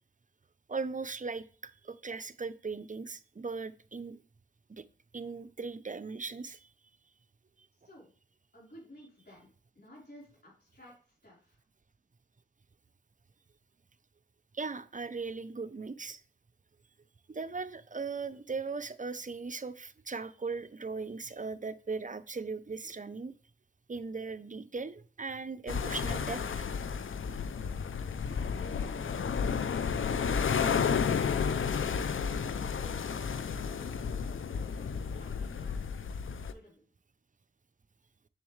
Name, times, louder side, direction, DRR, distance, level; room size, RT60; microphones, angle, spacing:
voice 1, 0.7-4.2 4.7-4.8 5.1-6.6 14.5-16.2 17.3-23.3 23.9-26.7, right 4 dB, 40° right, 13 dB, 0.6 m, -38 dB
voice 2, 8.5-9.5 9.7-11.6 34.5-36.8, equal, 55° left, -5 dB, 4.1 m, -55 dB
sound 1, 25.7-36.5, left 6 dB, 80° left, 0.5 m, -32 dB
7.2 x 7.0 x 3.2 m, 0.41 s
cardioid pair, 40°, 20 cm